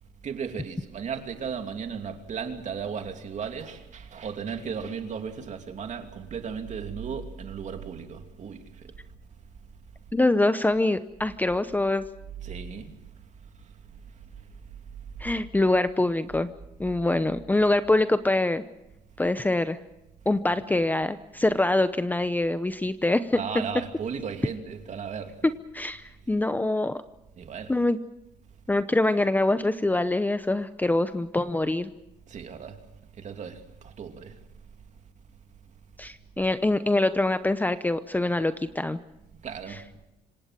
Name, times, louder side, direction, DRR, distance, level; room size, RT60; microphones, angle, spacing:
voice 1, 0.2-8.9 12.4-13.0 20.5-20.6 23.4-25.4 27.4-27.7 32.3-32.8 33.2-34.4 39.4-39.8, right 6 dB, 45° right, 2.8 m, -35 dB
voice 2, 10.1-12.0 15.2-16.5 16.8-18.6 19.2-19.8 20.3-23.4 25.7-27.0 27.7-28.0 28.7-31.9 36.0-39.0, left 2 dB, 10° left, 0.8 m, -24 dB
26.5 x 17.5 x 7.5 m
cardioid pair, 110°, 17 cm